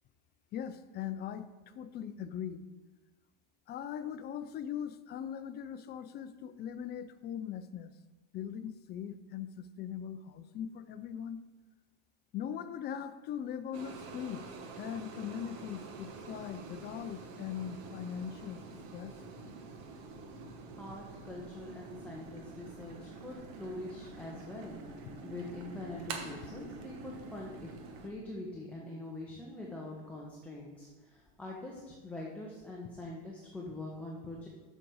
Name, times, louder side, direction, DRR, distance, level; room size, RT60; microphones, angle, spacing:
voice 1, 0.5-1.5 1.8-2.6 3.7-7.9 8.3-11.4 12.3-14.4 14.8-18.6 18.9-19.1, left 9 dB, 35° left, 12 dB, 0.5 m, -40 dB
sound 1, 13.7-28.1, right 4 dB, 50° right, 1.4 m, -47 dB
voice 2, 20.7-24.8 25.2-34.5, left 2 dB, 5° left, -4 dB, 1.2 m, -44 dB
7.4 x 5.4 x 6.4 m, 1.2 s
supercardioid pair, 125°, 29 cm